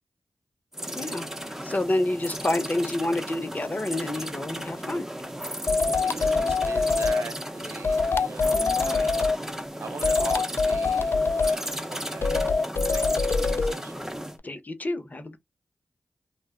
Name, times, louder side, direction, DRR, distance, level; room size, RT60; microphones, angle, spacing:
sound 1, 0.7-14.4, equal, 10° right, 0.7 m, -35 dB
voice 1, 1.0-5.1 6.0-6.1 6.4-6.5 8.5-9.1 14.4-15.4, left 1 dB, 40° left, 0.8 m, -29 dB
sound 2, 5.7-7.2 7.8-9.4 10.0-11.6 12.2-13.7, left 4 dB, 60° left, 0.3 m, -24 dB
voice 2, 6.0-14.0, right 4 dB, 85° right, 0.6 m, -42 dB
2.2 x 2.1 x 3.5 m
cardioid pair, 45°, 4 cm